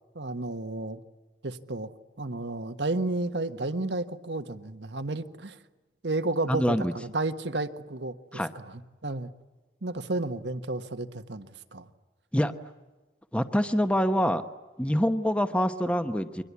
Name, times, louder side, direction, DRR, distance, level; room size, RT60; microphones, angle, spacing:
voice 1, 0.1-1.0 1.4-1.9 2.2-5.6 6.0-8.2 8.5-9.3 9.8-11.9, right 2 dB, 80° right, 10 dB, 1.4 m, -32 dB
voice 2, 6.5-6.9 8.3-8.5 12.3-12.5 13.3-14.4 14.8-16.4, equal, 5° left, 8 dB, 1.0 m, -25 dB
29.5 x 23.5 x 8.4 m, 1.2 s
head